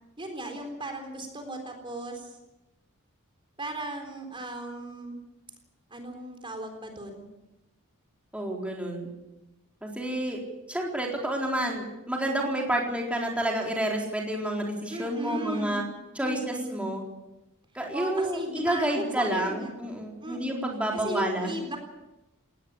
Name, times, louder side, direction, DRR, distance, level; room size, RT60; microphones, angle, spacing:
voice 1, 0.2-2.4 3.6-5.2 5.9-7.2 14.9-15.9 16.2-16.9 17.9-19.7 20.2-20.6 20.9-21.8, right 1 dB, 25° right, 4 dB, 3.9 m, -36 dB
voice 2, 8.3-9.1 9.8-10.4 10.7-15.8 16.1-17.0 17.7-21.5, right 1 dB, 5° right, -1 dB, 4.0 m, -29 dB
19.5 x 18.5 x 8.6 m, 0.96 s
head